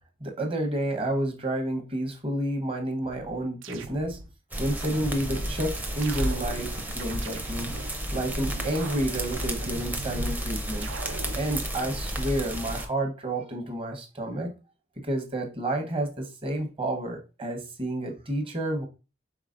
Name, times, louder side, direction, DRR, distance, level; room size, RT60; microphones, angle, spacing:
voice 1, 0.2-4.2 4.6-7.7 8.1-10.9 11.4-14.5 15.0-18.8, right 1 dB, 30° right, 0.9 m, -30 dB
sound 1, 3.0-4.3 4.8-5.5 6.0-7.9 8.4-10.3 10.8-11.5, right 4 dB, 65° right, 0.4 m, -41 dB
sound 2, 4.5-12.9, equal, 10° right, 0.5 m, -32 dB
4.8 x 3.8 x 2.5 m
head